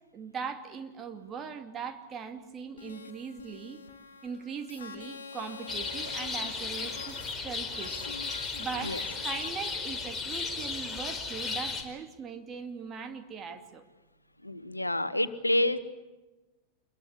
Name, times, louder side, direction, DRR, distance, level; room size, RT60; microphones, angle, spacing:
voice 1, 0.1-3.8 4.2-8.0 8.3-13.8, right 6 dB, 25° right, 6 dB, 2.5 m, -40 dB
sound 1, 2.8-9.5, left 5 dB, 65° left, 2.4 m, -46 dB
sound 2, 5.7-11.8, left 4 dB, 10° left, 4.4 m, -35 dB
voice 2, 14.4-15.8, left 1 dB, 85° left, 13 dB, 1.2 m, -28 dB
26.0 x 22.5 x 8.5 m, 1.1 s
figure-of-eight pair, 90°, 0 cm